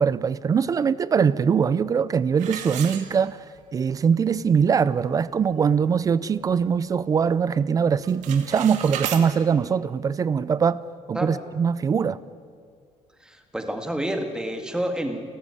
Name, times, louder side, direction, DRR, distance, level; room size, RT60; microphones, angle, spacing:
voice 1, 0.0-3.5 3.7-10.8 11.1-12.2, right 6 dB, 25° right, 0.5 m, -22 dB
sound 1, 2.4-3.6 4.1-4.2 4.8-4.9 5.2-5.5 6.0-7.1 7.4-7.7 8.0-9.3, right 10 dB, 70° right, 2.3 m, -34 dB
voice 2, 13.2-15.2, right 1 dB, 5° right, 1.9 m, -29 dB
29.5 x 14.5 x 9.8 m
cardioid pair, 155°, 13 cm